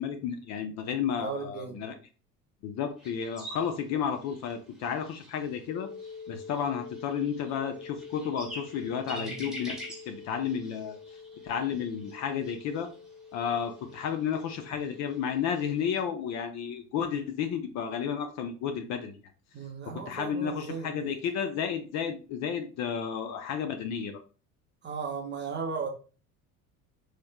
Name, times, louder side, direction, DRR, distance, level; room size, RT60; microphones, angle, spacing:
voice 1, 0.0-1.9 2.6-5.9 6.3-9.8 10.1-11.0 11.4-12.9 13.3-19.2 19.9-24.2, left 7 dB, 35° left, 6 dB, 0.5 m, -32 dB
voice 2, 1.2-1.8 9.1-9.5 19.5-21.2 24.8-25.9, right 5 dB, 25° right, 3 dB, 0.6 m, -36 dB
sound 1, 3.0-16.0, equal, ahead, 1.1 m, -48 dB
sound 2, 5.7-15.6, left 5 dB, 90° left, 0.9 m, -47 dB
3.1 x 3.1 x 2.3 m, 0.36 s
figure-of-eight pair, 65°, 47 cm